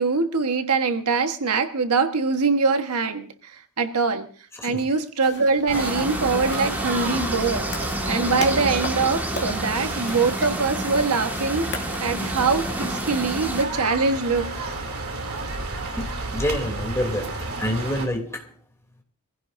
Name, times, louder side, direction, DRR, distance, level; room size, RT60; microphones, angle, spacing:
voice 1, 0.0-4.3 4.6-7.7 8.1-14.5, right 4 dB, 85° right, 1.3 m, -23 dB
sound 1, 5.2-13.1, left 3 dB, 50° left, 2.3 m, -39 dB
sound 2, 5.7-13.7, right 1 dB, 10° right, 1.7 m, -30 dB
sound 3, 5.7-18.1, right 2 dB, 70° right, 2.9 m, -31 dB
voice 2, 16.0-17.3 17.6-18.4, left 1 dB, 15° left, 3.0 m, -27 dB
25.0 x 16.0 x 2.6 m
head